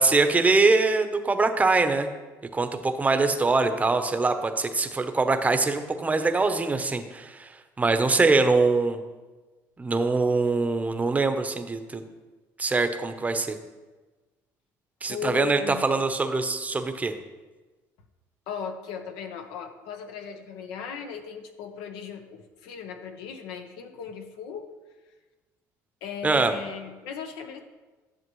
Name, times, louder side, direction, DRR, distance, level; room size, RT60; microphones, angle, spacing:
voice 1, 0.0-2.1 2.5-7.5 7.8-9.0 9.8-12.0 12.6-13.6 15.0-17.1 26.2-26.5, right 3 dB, 20° right, 8 dB, 0.8 m, -23 dB
voice 2, 15.1-15.9 18.5-24.7 26.0-27.6, left 7 dB, 85° left, 6 dB, 0.8 m, -37 dB
11.0 x 7.0 x 3.1 m, 1.2 s
supercardioid pair, 95°, 7 cm